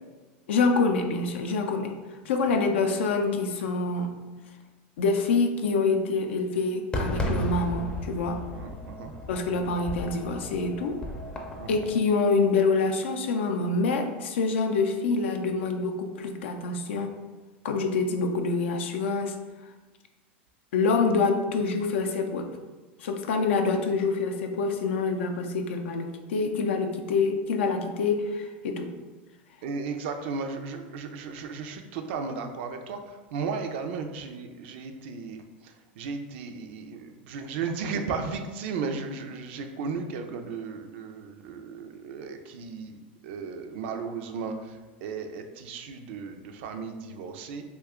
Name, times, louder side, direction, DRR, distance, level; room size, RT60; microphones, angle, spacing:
voice 1, 0.5-1.9 2.3-4.2 5.0-8.4 9.3-11.0 11.7-17.1 17.6-19.3 20.7-22.5 23.0-28.9, left 4 dB, 85° left, 4 dB, 0.4 m, -26 dB
Fireworks, 6.9-12.0, equal, 15° left, 0.5 m, -34 dB
voice 2, 8.5-9.1 11.6-11.8 29.6-47.6, right 5 dB, 70° right, 6 dB, 0.4 m, -35 dB
2.7 x 2.2 x 3.5 m, 1.2 s
hypercardioid pair, 110°, 6 cm